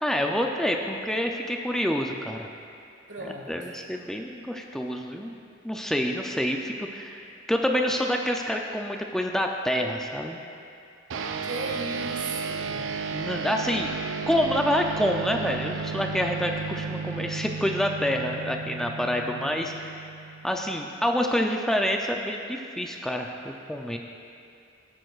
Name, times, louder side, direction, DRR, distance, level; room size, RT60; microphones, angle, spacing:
voice 1, 0.0-2.5 3.2-5.3 5.6-10.4 13.1-13.9 14.3-20.1 20.4-24.0, equal, 5° left, 2 dB, 0.4 m, -27 dB
voice 2, 3.1-3.7 11.4-12.8, right 3 dB, 70° right, -2 dB, 1.7 m, -36 dB
sound 1, 11.1-20.8, right 5 dB, 85° right, 0.5 m, -34 dB
17.0 x 8.9 x 2.4 m, 2.6 s
head